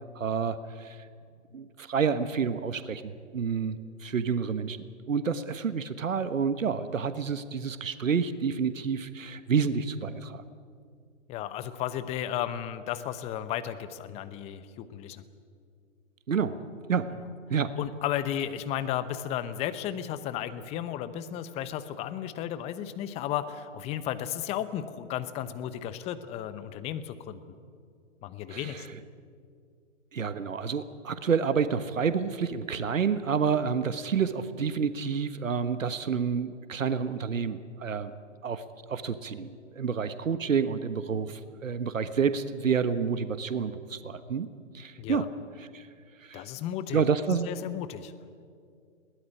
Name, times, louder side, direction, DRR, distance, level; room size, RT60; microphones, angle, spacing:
voice 1, 0.1-1.1 1.5-4.8 5.1-10.4 16.3-16.6 16.9-17.1 17.5-17.8 28.5-29.0 30.1-38.1 38.4-44.5 44.7-45.3 45.6-45.9 46.2-46.5 46.9-47.5, right 6 dB, 80° right, 12 dB, 1.4 m, -29 dB
voice 2, 11.3-15.2 17.8-27.4 28.2-28.9 45.0-45.3 46.3-47.0 47.5-48.1, left 11 dB, 15° left, 13 dB, 0.9 m, -34 dB
21.5 x 18.0 x 9.9 m, 2.3 s
hypercardioid pair, 140°, 38 cm